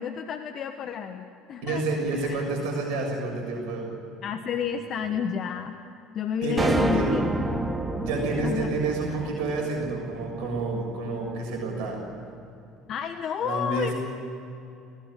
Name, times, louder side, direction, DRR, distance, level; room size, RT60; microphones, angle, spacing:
voice 1, 0.0-2.4 4.2-5.8 6.1-7.2 7.5-7.6 8.4-8.7 12.9-13.9, left 7 dB, 50° left, 7 dB, 1.3 m, -31 dB
voice 2, 1.6-3.9 5.0-5.1 6.4-7.1 8.0-12.0 13.4-13.9, right 3 dB, 70° right, 1 dB, 6.8 m, -29 dB
sound 1, 6.6-11.0, right 2 dB, 15° right, 2.3 m, -29 dB
20.5 x 19.0 x 9.9 m, 2.7 s
hypercardioid pair, 65°, 0 cm